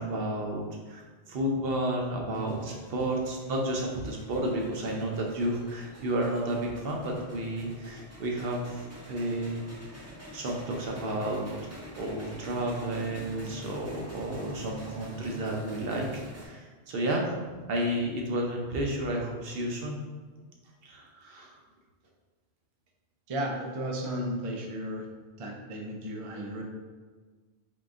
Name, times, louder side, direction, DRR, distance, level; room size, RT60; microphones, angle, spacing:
voice 1, 0.0-16.1 16.3-17.3 17.7-20.0 20.8-21.6, right 1 dB, 65° right, 0 dB, 0.8 m, -32 dB
sound 1, 2.3-16.5, equal, 15° right, 0.7 m, -47 dB
voice 2, 23.3-25.0 25.4-26.6, equal, 50° right, 0 dB, 0.4 m, -34 dB
3.7 x 3.6 x 2.4 m, 1.4 s
omnidirectional pair, 1.1 m